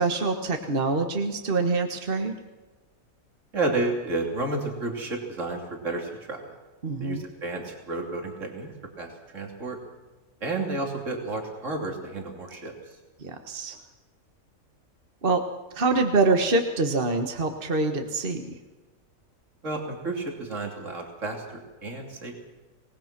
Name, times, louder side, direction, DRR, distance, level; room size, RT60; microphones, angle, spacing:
voice 1, 0.0-2.3 6.8-7.2 13.2-13.8 15.2-15.4 15.7-18.5, right 3 dB, 40° right, 5 dB, 1.7 m, -25 dB
voice 2, 3.5-6.5 7.0-8.7 9.0-9.8 10.4-12.7 19.6-22.4, right 2 dB, 60° right, 1 dB, 3.5 m, -31 dB
26.0 x 19.5 x 6.1 m, 1.2 s
omnidirectional pair, 1.5 m